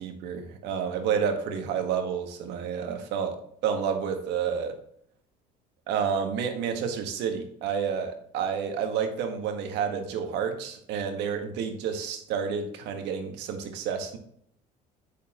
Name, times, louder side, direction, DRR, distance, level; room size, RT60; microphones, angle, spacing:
voice 1, 0.0-4.7 5.9-14.2, right 7 dB, 75° right, 5 dB, 1.5 m, -30 dB
8.3 x 6.6 x 3.0 m, 0.67 s
supercardioid pair, 90°, 18 cm